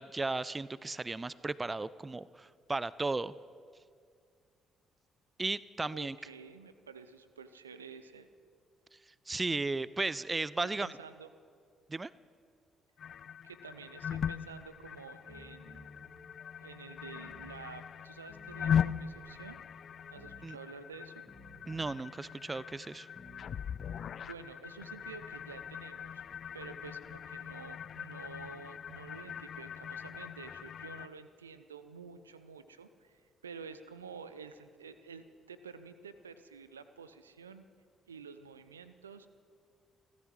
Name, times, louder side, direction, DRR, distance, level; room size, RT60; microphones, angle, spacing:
voice 1, 0.0-3.3 5.4-6.2 9.3-10.9 11.9-12.1 20.4-20.6 21.7-23.1, right 3 dB, 25° right, 19 dB, 0.4 m, -35 dB
voice 2, 5.9-8.3 10.8-11.3 13.4-15.9 16.6-19.6 20.1-21.3 24.2-26.2 26.5-37.7 38.1-39.3, right 5 dB, 85° right, 12 dB, 0.5 m, -50 dB
sound 1, 13.0-31.1, left 8 dB, 50° left, 0.3 m, -39 dB
sound 2, 15.1-24.3, left 1 dB, 30° left, 2.3 m, -57 dB
29.5 x 13.5 x 3.2 m, 2.2 s
figure-of-eight pair, 45°, 0 cm